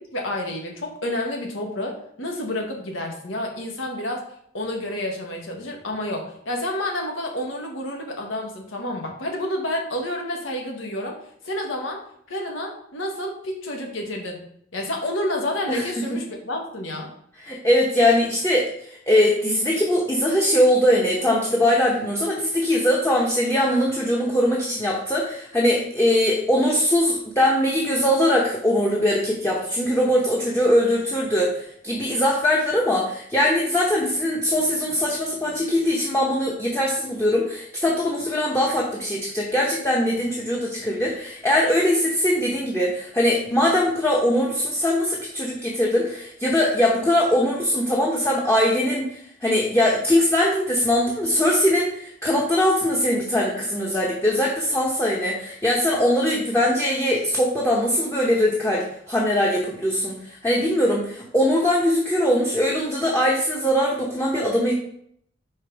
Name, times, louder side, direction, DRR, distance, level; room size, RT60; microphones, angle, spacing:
voice 1, 0.1-4.2 4.5-11.2 11.4-12.0 12.3-14.4 14.7-17.1, left 1 dB, 75° left, 1 dB, 1.5 m, -29 dB
voice 2, 17.4-18.7 19.1-60.2 60.4-64.7, left 1 dB, 10° left, -4 dB, 1.0 m, -21 dB
5.2 x 3.8 x 5.2 m, 0.67 s
head